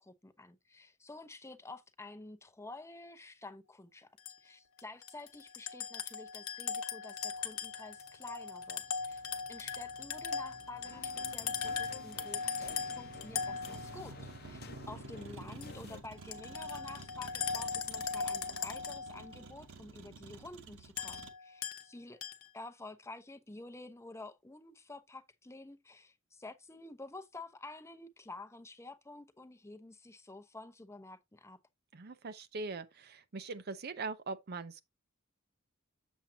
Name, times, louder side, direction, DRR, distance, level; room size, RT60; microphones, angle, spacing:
voice 1, 0.0-4.1 4.4-9.2 9.5-14.6 14.9-22.2 22.5-31.6, left 2 dB, 15° left, 0.7 m, -50 dB
sound 1, 4.2-4.3 4.8-14.2 15.6-15.7 16.1-19.4 21.0-21.9 22.2-22.5, left 6 dB, 80° left, 1.0 m, -39 dB
Motor vehicle (road), 7.2-21.3, right 2 dB, 75° right, 1.2 m, -52 dB
sound 2, 10.8-16.0, left 4 dB, 50° left, 0.8 m, -53 dB
voice 2, 31.9-34.8, right 3 dB, 50° right, 0.6 m, -41 dB
7.2 x 7.1 x 2.7 m
head